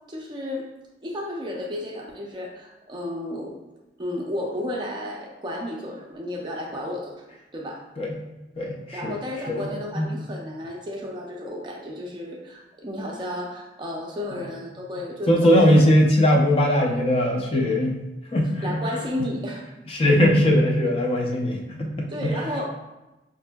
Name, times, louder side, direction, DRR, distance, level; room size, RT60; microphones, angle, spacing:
voice 1, 0.1-0.7 1.0-3.6 4.0-7.2 7.5-7.9 8.9-15.8 18.6-19.7 22.1-22.7, left 1 dB, 25° right, -1 dB, 0.4 m, -32 dB
voice 2, 8.6-9.2 9.5-10.1 15.3-18.0 18.3-18.8 19.9-22.3, left 1 dB, 30° left, 0 dB, 0.4 m, -20 dB
5.1 x 2.6 x 2.2 m, 1.0 s
head